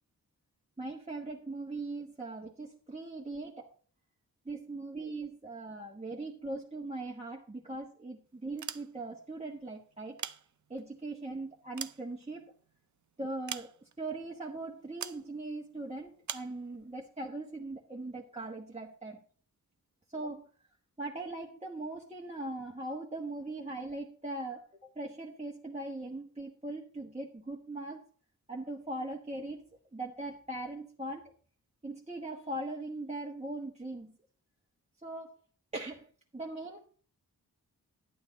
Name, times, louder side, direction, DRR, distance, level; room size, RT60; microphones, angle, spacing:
voice 1, 0.8-3.7 4.4-10.2 10.7-12.5 13.2-13.7 14.0-19.2 20.1-20.4 21.0-24.6 24.9-28.0 28.5-29.6 29.9-31.3 31.8-34.1 35.0-35.3 35.7-36.9, right 2 dB, 15° right, -2 dB, 1.4 m, -40 dB
sound 1, 8.5-9.3 10.0-11.0 11.5-12.7 13.5-14.1 15.0-15.3 16.2-16.6, right 8 dB, 50° right, 0.6 m, -42 dB
11.0 x 8.8 x 4.0 m, 0.43 s
cardioid pair, 55°, 37 cm